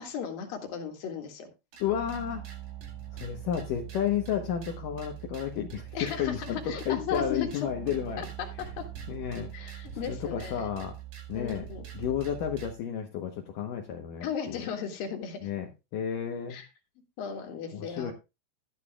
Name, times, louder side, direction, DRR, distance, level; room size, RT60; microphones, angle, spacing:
voice 1, 0.0-1.5 5.9-7.5 8.2-8.8 9.5-10.7 11.3-11.8 14.2-15.5 16.5-16.7 17.2-18.1, left 7 dB, 55° left, 3 dB, 3.1 m, -36 dB
sound 1, 1.7-12.7, right 11 dB, 55° right, 2.7 m, -42 dB
voice 2, 1.8-2.4 3.2-8.3 9.1-11.0 11.3-11.7 11.9-14.7 15.4-16.6 17.7-18.1, left 9 dB, 85° left, 3 dB, 1.8 m, -32 dB
13.5 x 10.5 x 2.3 m, 0.26 s
omnidirectional pair, 5.5 m